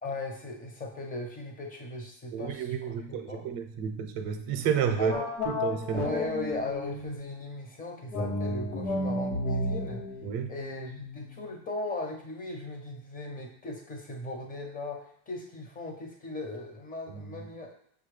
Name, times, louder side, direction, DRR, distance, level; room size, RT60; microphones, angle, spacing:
voice 1, 0.0-3.5 5.0-5.3 5.9-10.0 10.5-17.7, left 2 dB, 20° left, 2 dB, 0.9 m, -38 dB
voice 2, 2.3-5.2 5.6-6.1 10.2-10.5 17.1-17.3, right 7 dB, 55° right, 7 dB, 0.7 m, -31 dB
sound 1, 5.1-7.3 8.1-11.4, left 2 dB, 90° left, 1.1 m, -33 dB
5.5 x 2.4 x 3.2 m, 0.64 s
supercardioid pair, 120°, 45 cm